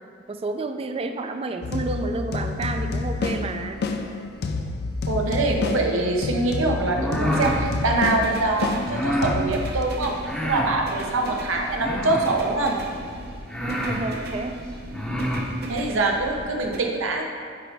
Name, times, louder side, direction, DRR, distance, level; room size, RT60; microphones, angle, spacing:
voice 1, 0.3-3.8 13.6-14.6, right 3 dB, 30° right, 7 dB, 0.4 m, -30 dB
sound 1, 1.6-9.8, left 3 dB, 55° left, 0.4 m, -29 dB
sound 2, 1.6-16.8, right 1 dB, 55° right, 0.7 m, -38 dB
voice 2, 5.1-10.2 10.4-12.8 15.7-17.2, right 2 dB, 85° right, 1 dB, 0.8 m, -24 dB
sound 3, 6.8-7.6 8.8-9.4 10.2-10.8 11.8-12.4 13.1-13.2 13.5-14.0 14.8-15.5, left 1 dB, 5° left, 0.7 m, -27 dB
9.3 x 4.0 x 3.4 m, 2.1 s
head